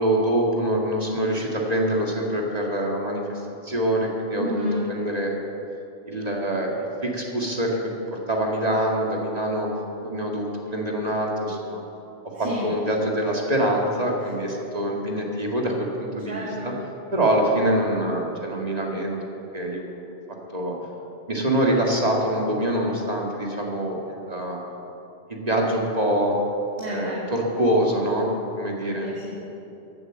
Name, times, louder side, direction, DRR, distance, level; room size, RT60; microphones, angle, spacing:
voice 1, 0.0-5.3 6.1-9.7 10.0-11.8 12.4-16.7 17.1-20.0 20.5-20.8 21.3-24.6 25.3-26.4 26.9-28.3 28.5-29.1, right 1 dB, 35° right, -1 dB, 2.0 m, -25 dB
voice 2, 4.3-4.8 12.3-12.7 16.3-16.7 26.8-27.3 28.9-29.3, left 1 dB, 60° right, -6 dB, 2.6 m, -30 dB
15.0 x 8.7 x 7.4 m, 2.9 s
omnidirectional pair, 1.1 m